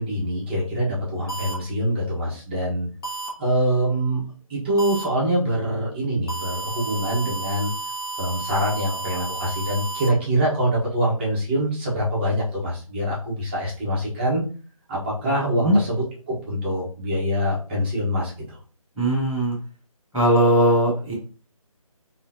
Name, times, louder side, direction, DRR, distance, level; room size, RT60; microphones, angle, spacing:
voice 1, 0.0-2.9 3.4-4.2 4.5-7.7 8.2-14.4 14.9-18.6, equal, 20° right, -6 dB, 1.5 m, -24 dB
sound 1, 1.3-1.5 3.0-3.3 4.8-5.0 6.3-10.1, right 2 dB, 40° left, 1.4 m, -32 dB
voice 2, 15.2-15.8 18.9-19.5 20.1-21.1, right 1 dB, ahead, -20 dB, 0.4 m, -20 dB
5.6 x 3.2 x 2.9 m, 0.38 s
figure-of-eight pair, 165°, 18 cm